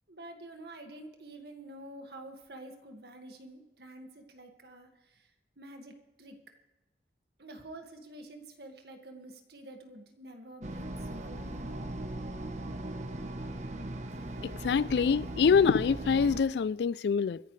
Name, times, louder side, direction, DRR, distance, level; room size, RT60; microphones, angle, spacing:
voice 1, 0.1-5.3 5.6-6.4 7.4-11.8, right 1 dB, 65° right, 1.9 m, -48 dB
sound 1, 10.6-16.4, right 1 dB, 40° right, 0.9 m, -39 dB
voice 2, 14.4-17.4, left 6 dB, 70° left, 0.3 m, -25 dB
24.5 x 11.0 x 3.3 m
head